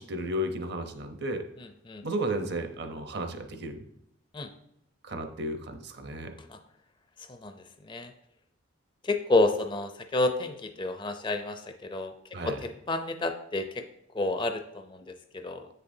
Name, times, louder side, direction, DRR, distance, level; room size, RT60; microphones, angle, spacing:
voice 1, 0.0-1.4 2.0-3.8 5.0-6.3 12.3-12.6 15.0-15.1, right 1 dB, 50° right, 7 dB, 0.7 m, -33 dB
voice 2, 1.6-2.0 4.3-4.5 6.5-6.6 7.2-8.1 9.0-12.1 12.4-13.8 14.1-15.7, left 2 dB, 25° left, 7 dB, 0.4 m, -30 dB
8.2 x 6.7 x 2.7 m, 0.78 s
head